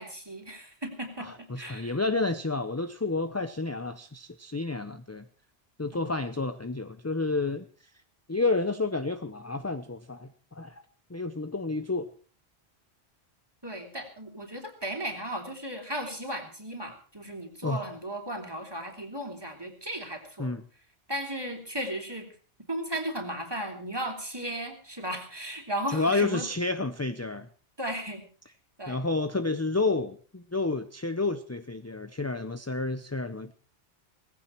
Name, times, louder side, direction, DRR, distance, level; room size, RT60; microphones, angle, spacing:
voice 1, 0.0-1.9 5.9-6.2 13.6-20.5 21.1-22.3 22.7-26.4 27.8-28.2 28.8-29.0, right 1 dB, 20° right, 2 dB, 3.4 m, -36 dB
voice 2, 1.2-5.3 5.8-7.7 8.3-10.8 11.1-12.1 17.6-17.9 20.4-20.6 25.9-27.5 28.9-33.5, left 3 dB, 15° left, 10 dB, 0.6 m, -30 dB
18.5 x 16.0 x 4.5 m, 0.39 s
omnidirectional pair, 1.1 m